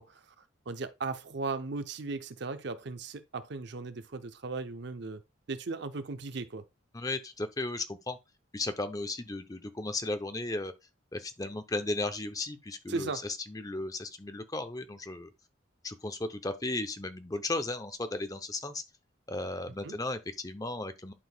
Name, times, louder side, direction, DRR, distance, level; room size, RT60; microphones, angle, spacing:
voice 1, 0.0-5.2 5.5-6.7 12.9-13.2 19.8-20.0, right 3 dB, 55° right, 0.6 m, -37 dB
voice 2, 6.9-8.2 8.5-10.7 11.1-13.1 13.5-15.3 15.8-18.8 19.3-21.1, left 2 dB, 20° left, 0.6 m, -35 dB
11.0 x 4.7 x 2.3 m
head